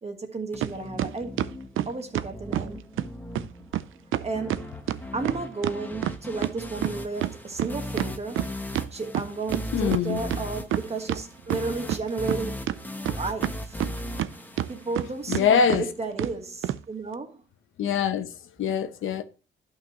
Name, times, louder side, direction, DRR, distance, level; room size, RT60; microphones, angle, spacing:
voice 1, 0.0-1.5 1.9-2.8 4.2-4.7 5.1-8.5 8.9-12.7 13.0-13.8 14.7-17.4, right 3 dB, 30° right, 1.4 m, -33 dB
sound 1, 0.5-15.5, left 1 dB, 10° left, 0.9 m, -38 dB
sound 2, 0.6-0.7 1.0-2.7 3.0-3.1 3.3-3.5 3.7-3.8 4.1-6.5 6.8-9.6 9.9-10.0 10.3-11.2 11.5-12.4 12.7-14.3 14.6-15.0 15.3-15.4 15.7-15.8 16.2-16.3 16.6-16.8, right 12 dB, 90° right, 0.5 m, -28 dB
voice 2, 9.7-10.2 15.3-15.9 17.8-18.3 18.6-19.2, left 7 dB, 85° left, 0.9 m, -23 dB
11.5 x 5.8 x 3.0 m
cardioid pair, 120°, 20 cm